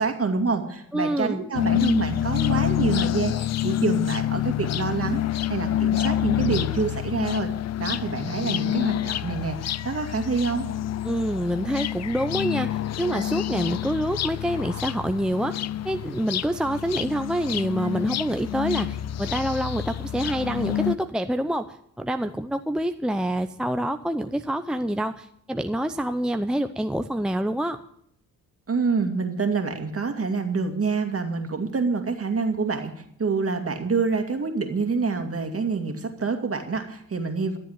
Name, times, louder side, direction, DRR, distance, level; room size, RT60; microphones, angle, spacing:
voice 1, 0.0-5.2 5.5-7.5 7.8-10.7 28.7-32.9 33.2-37.6, right 4 dB, 40° right, 5 dB, 2.3 m, -27 dB
voice 2, 0.9-1.4 11.0-27.8, right 1 dB, ahead, 7 dB, 0.7 m, -27 dB
sound 1, 1.5-21.0, left 12 dB, 45° left, 0.5 m, -27 dB
13.0 x 7.8 x 8.1 m, 0.70 s
supercardioid pair, 65°, 36 cm